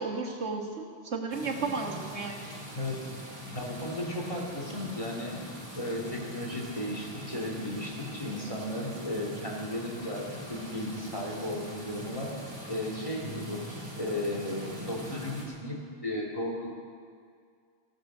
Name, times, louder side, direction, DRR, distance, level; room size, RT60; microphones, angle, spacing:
voice 1, 0.0-2.5, right 4 dB, 65° right, 0 dB, 2.0 m, -33 dB
sound 1, 1.3-15.4, equal, 30° right, 2.8 m, -42 dB
voice 2, 3.5-5.4 5.7-12.3 12.7-16.7, left 1 dB, 25° left, -2 dB, 2.7 m, -35 dB
16.0 x 13.0 x 6.2 m, 2.1 s
omnidirectional pair, 1.3 m